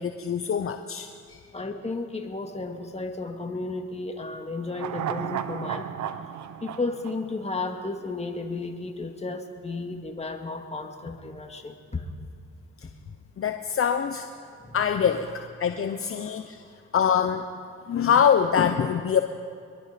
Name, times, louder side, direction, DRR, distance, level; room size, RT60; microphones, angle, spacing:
voice 1, 0.0-1.4 13.4-14.3 14.7-15.3 15.6-16.6 16.9-17.5 17.9-19.2, left 7 dB, 45° left, 7 dB, 1.0 m, -24 dB
voice 2, 1.5-5.9 6.6-12.1 12.8-12.9 14.6-14.8 16.1-16.4, left 3 dB, 20° left, 3 dB, 2.3 m, -33 dB
sound 1, 4.7-8.1 8.4-8.5, right 9 dB, 70° right, 1.0 m, -34 dB
23.0 x 22.5 x 5.2 m, 2.3 s
cardioid pair, 90°, 30 cm